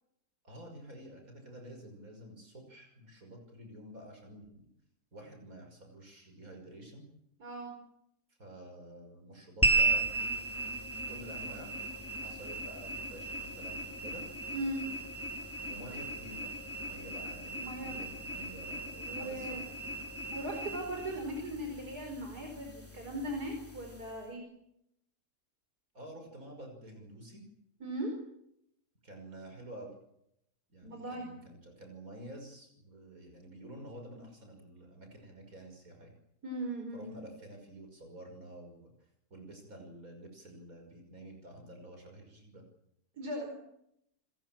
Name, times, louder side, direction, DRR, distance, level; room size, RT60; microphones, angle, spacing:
voice 1, 0.4-4.7 5.1-7.1 8.4-10.4 11.1-11.8 12.2-14.2 15.7-16.4 16.8-19.6 25.9-27.4 29.0-29.9 30.7-36.1 36.9-38.9 39.3-42.6, right 1 dB, 60° right, 4 dB, 6.4 m, -49 dB
voice 2, 7.4-7.7 14.5-14.8 17.6-18.1 19.0-19.6 20.3-24.4 27.8-28.1 30.8-31.3 36.4-37.2 43.2-43.5, right 1 dB, 85° right, 2 dB, 5.5 m, -38 dB
sound 1, 9.6-24.2, right 2 dB, 10° left, 2.9 m, -36 dB
29.0 x 21.5 x 7.6 m, 0.78 s
omnidirectional pair, 1.6 m